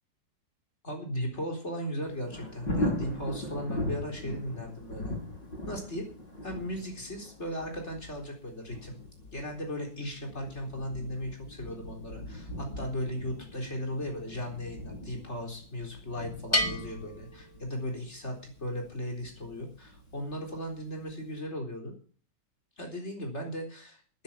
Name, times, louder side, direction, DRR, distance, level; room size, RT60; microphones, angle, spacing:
voice 1, 0.8-5.1 5.7-6.1 6.4-9.0 9.3-21.9 22.8-24.2, equal, 35° left, 2 dB, 4.3 m, -37 dB
Thunder, 2.0-20.8 21.2-21.3, left 1 dB, 80° left, 6.8 m, -40 dB
Bell, 16.5-18.2, left 1 dB, 10° left, 1.5 m, -32 dB
12.5 x 10.0 x 7.4 m, 0.43 s
omnidirectional pair, 2.0 m